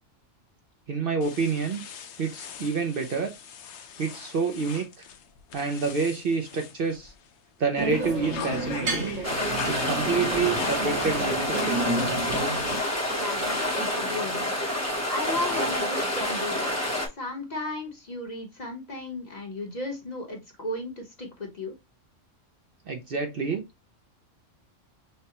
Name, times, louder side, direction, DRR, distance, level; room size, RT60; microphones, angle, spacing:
voice 1, 0.9-1.8 2.2-3.3 4.0-5.1 5.5-7.1 7.6-9.1 9.7-12.1 22.9-23.6, right 5 dB, 55° right, 0.8 m, -28 dB
sound 1, 1.2-7.4 7.8-13.3, left 8 dB, 70° left, 0.9 m, -42 dB
sound 2, 7.8-12.8, right 2 dB, 90° right, 1.5 m, -31 dB
sound 3, 9.2-17.1, left 1 dB, 15° left, 0.9 m, -28 dB
voice 2, 13.1-14.6 15.1-16.8 17.1-21.7, left 1 dB, 35° left, 1.1 m, -35 dB
6.4 x 2.2 x 2.9 m
omnidirectional pair, 1.3 m